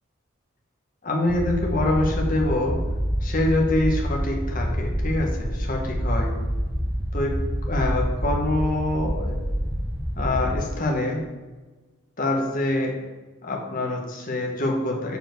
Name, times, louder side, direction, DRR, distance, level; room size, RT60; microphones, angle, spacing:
voice 1, 1.0-2.9 3.2-6.4 7.1-9.5 10.2-11.3 12.2-13.0 13.4-15.2, left 1 dB, 40° left, 0 dB, 1.4 m, -25 dB
sound 1, 1.3-10.7, equal, ahead, 0.5 m, -27 dB
7.0 x 4.4 x 6.6 m, 1.3 s
head